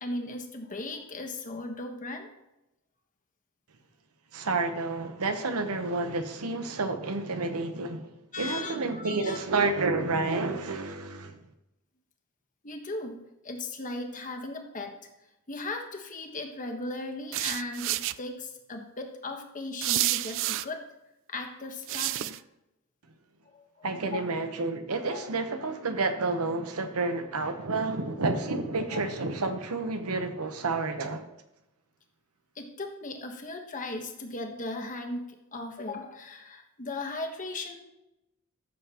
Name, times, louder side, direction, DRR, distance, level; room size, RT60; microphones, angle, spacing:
voice 1, 0.0-2.3 8.3-9.4 12.6-15.0 15.5-20.9 21.3-22.4 23.4-24.3 25.1-25.3 28.9-29.1 32.5-37.8, left 2 dB, 35° left, 1.3 m, -37 dB
voice 2, 4.3-8.1 8.4-11.4 23.8-31.2, right 3 dB, 85° right, 1.0 m, -30 dB
sound 1, 17.3-18.1 19.8-20.6 21.9-22.4, right 15 dB, 60° right, 0.3 m, -29 dB
13.5 x 6.9 x 3.0 m
head